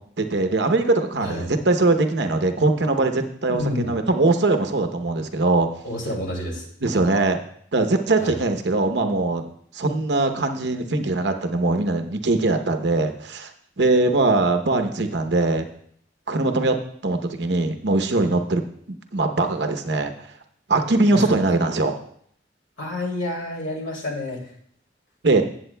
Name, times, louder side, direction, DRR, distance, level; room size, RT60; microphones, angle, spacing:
voice 1, 0.2-5.7 6.8-7.4 7.7-9.5 9.7-13.5 13.8-15.7 16.3-16.8 17.0-18.6 19.1-20.1 20.7-22.0 25.2-25.4, right 2 dB, 70° right, 7 dB, 0.8 m, -21 dB
voice 2, 1.2-1.5 3.6-3.9 5.8-6.7 8.2-8.4 21.1-21.3 22.8-24.4, left 1 dB, 90° left, -1 dB, 2.5 m, -29 dB
16.0 x 7.7 x 2.2 m, 0.64 s
head